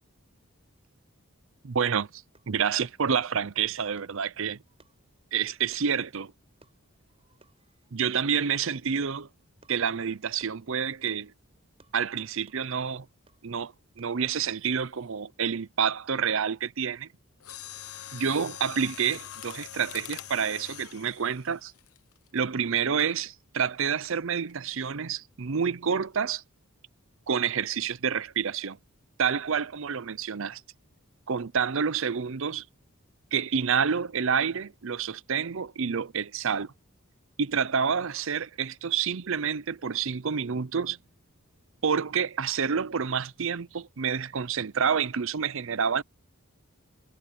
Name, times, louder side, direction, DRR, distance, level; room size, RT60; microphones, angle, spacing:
voice 1, 1.6-2.1 2.5-4.6 5.3-6.3 7.9-9.3 9.7-11.3 11.9-13.1 13.4-17.1 18.1-21.7 22.3-26.4 27.3-28.8 29.2-30.6 31.3-32.6 33.3-36.7 37.4-41.0 41.8-46.0, right 6 dB, 60° right, 0.6 m, -28 dB
sound 1, 2.3-15.0, right 2 dB, 25° right, 7.1 m, -65 dB
Mechanisms, 17.4-22.4 23.0-23.2 23.8-24.2 24.5-24.6, left 11 dB, 90° left, 1.0 m, -43 dB
head